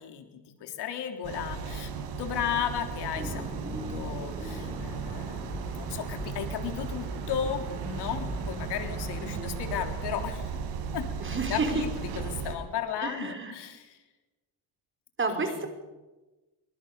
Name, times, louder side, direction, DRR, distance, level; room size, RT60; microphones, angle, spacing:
voice 1, 0.0-10.5 10.9-11.1 11.5-14.0 15.3-15.7, left 9 dB, 75° left, 6 dB, 3.7 m, -35 dB
sound 1, 1.2-12.5, right 5 dB, 90° right, 4.9 m, -36 dB
sound 2, 3.2-9.4, right 1 dB, 15° right, 3.6 m, -42 dB
sound 3, 4.7-10.3, right 4 dB, 65° right, 6.7 m, -45 dB
voice 2, 9.2-9.5 11.2-11.7 13.0-13.5 15.2-15.7, right 4 dB, 30° right, 5 dB, 5.3 m, -31 dB
25.0 x 23.5 x 7.0 m, 1.1 s
cardioid pair, 120°, 41 cm